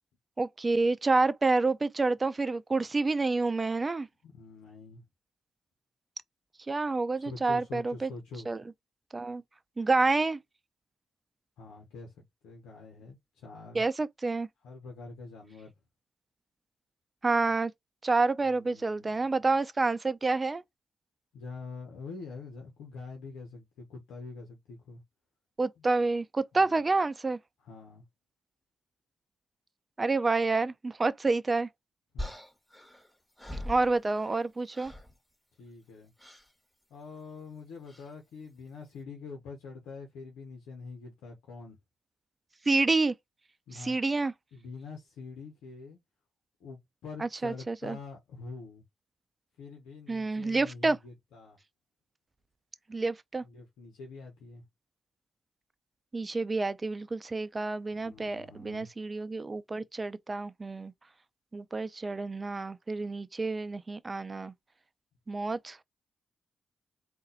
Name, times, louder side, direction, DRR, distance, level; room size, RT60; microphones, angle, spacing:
voice 1, 0.4-4.1 6.7-8.1 8.5-8.6 9.1-9.4 9.8-10.4 13.7-14.5 17.2-17.7 18.0-20.6 25.6-27.4 30.0-31.7 33.7-34.9 42.7-43.1 43.7-44.3 47.2-48.0 50.1-51.0 52.9-53.4 56.1-60.9 61.5-64.5 65.3-65.8, right 3 dB, 35° right, 0.6 m, -28 dB
voice 2, 4.2-5.0 7.2-8.5 11.6-12.1 12.4-13.8 14.6-15.7 18.5-19.2 21.3-25.0 25.8-25.9 26.5-26.9 27.6-28.0 32.1-32.3 35.6-36.1 36.9-41.8 43.7-44.0 44.5-46.0 46.6-48.8 49.6-51.6 53.4-54.6 57.9-58.9, left 4 dB, 80° left, 1.1 m, -45 dB
sound 1, 32.2-34.5 34.7-35.2 36.2-36.5 37.9-38.1, left 1 dB, 10° left, 2.2 m, -42 dB
4.0 x 2.7 x 3.9 m
hypercardioid pair, 45°, 0 cm